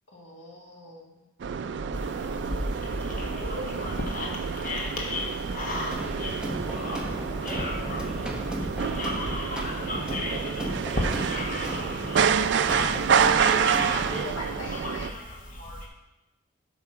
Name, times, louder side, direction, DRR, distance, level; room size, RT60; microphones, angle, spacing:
voice 1, 0.1-1.3 3.1-3.9 13.8-15.1, left 1 dB, 70° left, -1 dB, 1.9 m, -39 dB
sound 1, 1.4-15.1, right 7 dB, 60° right, 0.3 m, -28 dB
sound 2, 1.9-15.9, left 1 dB, 40° left, 1.2 m, -35 dB
voice 2, 2.2-2.6 6.7-8.5, equal, 25° left, -2 dB, 1.6 m, -49 dB
sound 3, 5.9-14.3, equal, 5° right, 0.8 m, -36 dB
8.1 x 5.9 x 4.6 m, 1.0 s
head